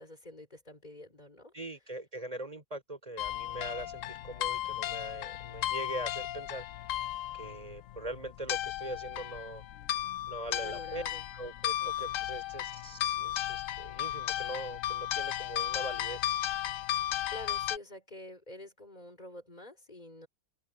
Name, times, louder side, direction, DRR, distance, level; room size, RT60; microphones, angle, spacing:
voice 1, 0.0-1.5 10.6-11.3 11.8-12.2 17.3-20.3, left 1 dB, 25° left, 4.9 m, -48 dB
voice 2, 1.5-6.6 7.3-9.6 10.3-11.0 11.3-16.4, right 1 dB, 25° right, 5.1 m, -42 dB
sound 1, 3.2-17.8, left 12 dB, 65° left, 0.9 m, -35 dB
omnidirectional pair, 1.6 m